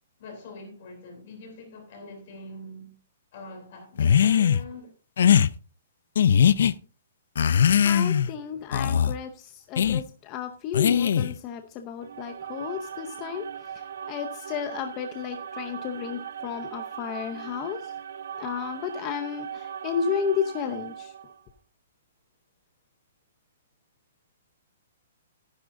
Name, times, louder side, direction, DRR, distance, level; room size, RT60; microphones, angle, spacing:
voice 1, 0.2-2.9 3.3-4.9, left 2 dB, 40° left, 3.2 m, -43 dB
sound 1, 4.0-4.6 5.2-5.5 6.1-6.7 7.3-8.3 8.7-9.1 9.8-10.0 10.7-11.4, left 8 dB, 60° left, 0.5 m, -20 dB
voice 2, 7.8-13.4 14.1-17.8 18.4-21.1, left 7 dB, 20° left, 0.6 m, -32 dB
sound 2, 12.0-21.4, right 8 dB, 60° right, 0.8 m, -39 dB
15.0 x 10.0 x 2.6 m
hypercardioid pair, 180°, 0 cm